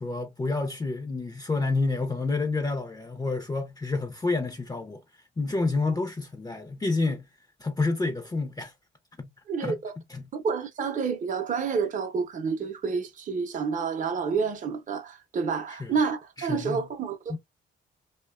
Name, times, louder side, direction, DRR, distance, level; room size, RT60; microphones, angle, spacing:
voice 1, 0.0-5.0 5.4-7.3 7.6-8.7 9.2-9.3 9.6-9.8 10.1-10.3 15.7-15.9 16.4-16.8 17.3-17.4, left 3 dB, 20° left, 0.5 m, -29 dB
voice 2, 9.5-9.9 10.3-17.4, right 5 dB, 40° right, 0.6 m, -29 dB
2.6 x 2.2 x 2.3 m
cardioid pair, 90°, 20 cm